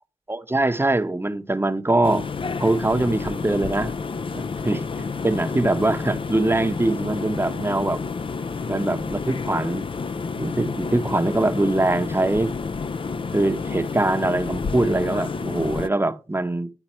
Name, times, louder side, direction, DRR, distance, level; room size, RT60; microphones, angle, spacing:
voice 1, 0.3-2.3 2.6-3.9 4.3-8.0 8.7-9.9 10.4-12.5 13.3-16.7, right 2 dB, 20° right, 0.8 m, -23 dB
sound 1, 2.0-15.9, left 4 dB, 45° left, 0.4 m, -30 dB
10.0 x 4.0 x 4.3 m
cardioid pair, 45°, 13 cm